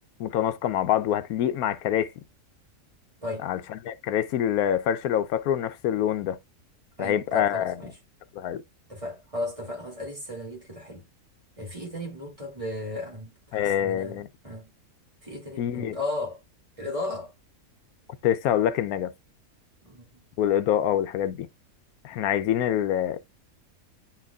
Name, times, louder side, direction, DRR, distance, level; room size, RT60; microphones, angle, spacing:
voice 1, 0.2-2.1 3.4-6.4 7.0-7.8 8.4-8.6 13.5-14.3 15.6-16.0 18.2-19.1 20.4-21.5 22.0-23.2, left 10 dB, 85° left, 1.1 m, -25 dB
voice 2, 7.0-7.9 8.9-11.1 11.6-14.7 15.2-16.4 16.8-17.3 19.8-20.1, left 2 dB, 20° right, 2.5 m, -35 dB
9.6 x 4.5 x 2.3 m
omnidirectional pair, 1.5 m